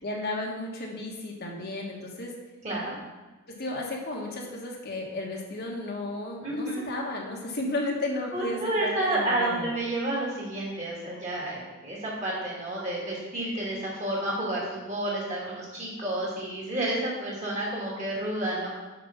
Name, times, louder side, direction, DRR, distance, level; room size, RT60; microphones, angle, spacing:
voice 1, 0.0-2.3 3.6-9.7, left 2 dB, 45° left, -1 dB, 1.3 m, -33 dB
voice 2, 2.6-3.0 6.4-6.9 8.3-18.7, right 1 dB, 30° right, -5 dB, 2.4 m, -30 dB
6.8 x 5.2 x 5.6 m, 1.2 s
head